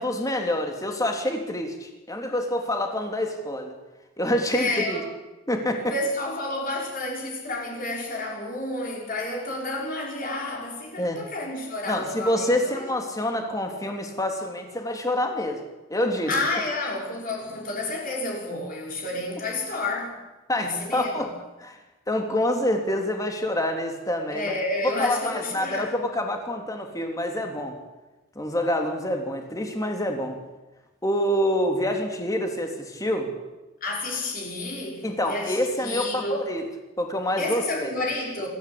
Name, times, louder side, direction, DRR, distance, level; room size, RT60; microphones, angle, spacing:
voice 1, 0.0-3.8 4.2-5.0 5.5-5.9 11.0-11.2 11.9-15.6 15.9-16.3 20.5-21.3 21.6-21.8 22.1-24.5 25.0-27.8 28.3-30.4 31.0-33.3 35.0-36.6 37.0-37.9, left 1 dB, 15° left, 3 dB, 3.2 m, -27 dB
voice 2, 4.5-5.1 5.8-12.8 16.3-20.2 20.6-21.3 24.3-25.8 33.8-36.5 37.4-38.5, left 2 dB, 40° left, -1 dB, 5.2 m, -30 dB
26.0 x 14.5 x 8.8 m, 1.1 s
head